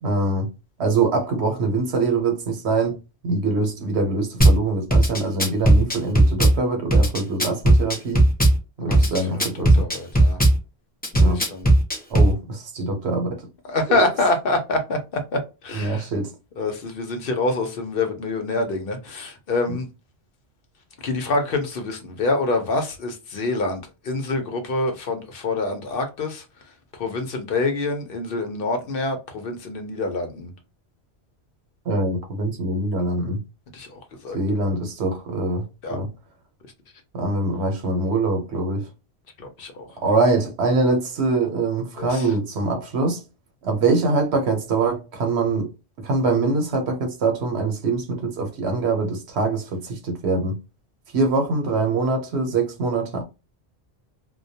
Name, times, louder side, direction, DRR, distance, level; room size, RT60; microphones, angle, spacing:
voice 1, 0.0-0.5 0.8-3.0 3.2-8.2 8.8-9.8 11.2-11.4 12.1-13.4 13.9-14.1 15.7-16.3 19.7-19.8 31.9-33.4 34.3-35.6 35.9-36.1 37.1-38.8 40.0-43.2 43.6-45.7 46.0-50.6 51.1-53.2, right 3 dB, 80° right, 1.0 m, -23 dB
Drum kit / Bass drum, 4.4-4.6 4.9-6.6 6.9-8.6 8.9-10.6 11.0-12.3, right 1 dB, 15° left, 0.4 m, -16 dB
voice 2, 8.8-10.4 11.1-11.7 13.6-16.1 16.6-19.9 21.0-26.4 26.9-30.5 33.7-34.4 35.8-36.0 39.4-39.9 42.0-42.3, left 2 dB, 65° left, 0.8 m, -26 dB
2.2 x 2.2 x 2.6 m
omnidirectional pair, 1.1 m